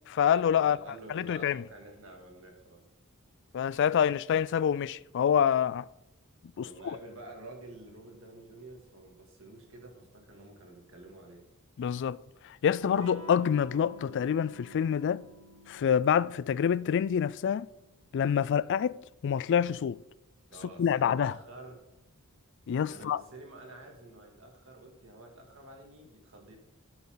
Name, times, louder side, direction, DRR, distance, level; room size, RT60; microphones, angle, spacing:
voice 1, 0.1-0.8 1.1-1.6 3.5-5.9 6.6-7.0 11.8-12.2 12.6-15.3 15.7-17.7 18.1-19.0 19.2-20.0 20.8-21.3 22.7-23.2, left 8 dB, 55° left, 0.3 m, -26 dB
voice 2, 0.6-2.8 6.6-11.4 20.5-21.8 22.8-26.6, right 2 dB, 65° right, 2.4 m, -49 dB
Electric guitar / Strum, 12.8-18.2, equal, 80° right, 1.5 m, -50 dB
12.0 x 8.4 x 3.9 m
head